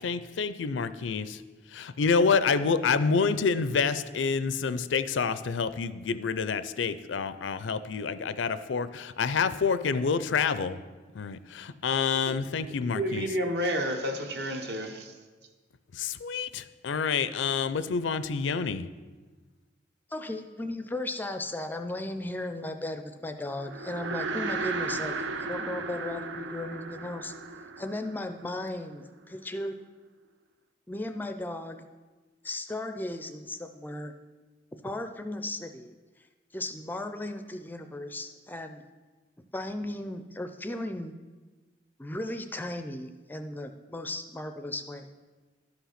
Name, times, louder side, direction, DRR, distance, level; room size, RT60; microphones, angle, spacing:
voice 1, 0.0-1.4 1.7-10.8 11.1-13.3 15.9-18.9, left 5 dB, 85° left, 13 dB, 0.5 m, -28 dB
voice 2, 12.9-15.1, equal, 60° right, 4 dB, 1.1 m, -30 dB
voice 3, 20.1-27.3 27.8-29.8 30.9-31.8 32.4-34.1 34.8-35.9 36.5-38.8 39.5-41.1 42.0-45.1, left 1 dB, 10° left, 8 dB, 0.4 m, -36 dB
sound 1, 23.6-29.0, right 3 dB, 80° right, 0.6 m, -35 dB
11.5 x 5.9 x 5.7 m, 1.3 s
head